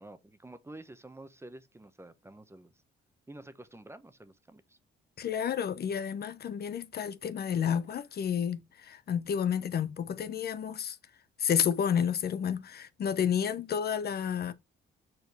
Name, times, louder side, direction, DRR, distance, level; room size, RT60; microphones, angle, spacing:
voice 1, 0.0-2.8 3.3-4.8 9.6-9.7, right 2 dB, 15° right, 0.9 m, -49 dB
voice 2, 5.2-11.0 11.4-14.5, left 8 dB, 55° left, 0.7 m, -30 dB
6.7 x 4.5 x 3.3 m
cardioid pair, 90°, 20 cm